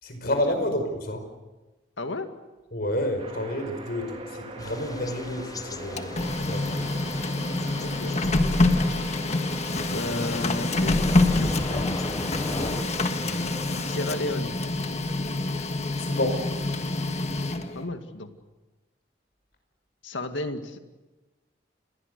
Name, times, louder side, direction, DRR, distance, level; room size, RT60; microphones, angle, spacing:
voice 1, 0.0-1.2 2.7-6.8 9.9-10.4 12.4-12.8 13.2-13.4 16.0-16.4, left 1 dB, 55° left, 6 dB, 5.1 m, -30 dB
voice 2, 2.0-2.3 7.9-8.2 9.9-12.0 13.8-14.6 17.7-18.3 20.0-20.8, left 2 dB, 85° left, 7 dB, 2.0 m, -33 dB
sound 1, 3.2-14.2, right 1 dB, 35° right, 3.1 m, -40 dB
Thunder / Rain, 4.6-12.8, left 2 dB, 20° left, 0.8 m, -38 dB
Printer, 5.8-17.8, left 2 dB, 35° left, 1.5 m, -26 dB
28.5 x 21.5 x 6.8 m, 1.1 s
head